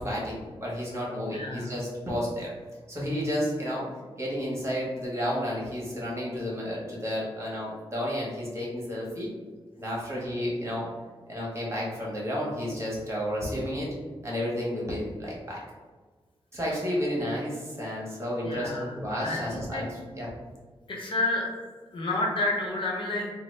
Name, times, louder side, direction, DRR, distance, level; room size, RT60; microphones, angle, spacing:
voice 1, 0.0-2.5 2.9-3.8 4.2-9.3 9.8-10.9 11.3-13.9 14.2-15.6 16.5-20.3, equal, 30° right, -5 dB, 1.3 m, -31 dB
voice 2, 1.3-1.7 18.4-18.9 19.2-19.8 20.9-21.5 21.9-23.3, left 2 dB, 60° left, -1 dB, 0.7 m, -29 dB
3.8 x 2.0 x 3.2 m, 1.4 s
cardioid pair, 75°, 10 cm